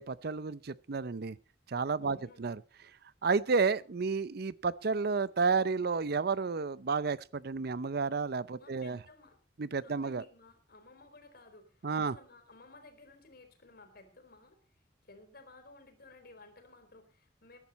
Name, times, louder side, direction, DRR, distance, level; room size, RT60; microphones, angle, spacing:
voice 1, 0.0-1.4 1.7-2.6 3.2-9.0 9.6-10.2 11.8-12.2, right 4 dB, 60° right, 0.6 m, -31 dB
voice 2, 2.0-2.4 8.6-9.4 9.8-14.6 15.0-17.6, left 2 dB, 60° left, 4.0 m, -56 dB
21.0 x 10.5 x 4.2 m
head